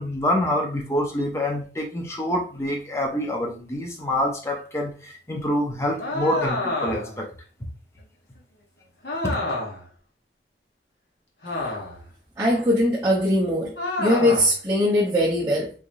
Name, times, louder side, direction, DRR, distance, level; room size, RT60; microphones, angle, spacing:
voice 1, 0.0-7.3 9.2-9.4, left 1 dB, 15° left, 0.6 m, -26 dB
sound 1, 6.0-7.2 9.0-9.9 11.4-12.1 13.8-14.6, left 2 dB, 65° left, 1.0 m, -28 dB
voice 2, 12.4-13.7 14.0-15.7, left 1 dB, 20° right, 0.7 m, -21 dB
3.7 x 3.2 x 2.6 m
head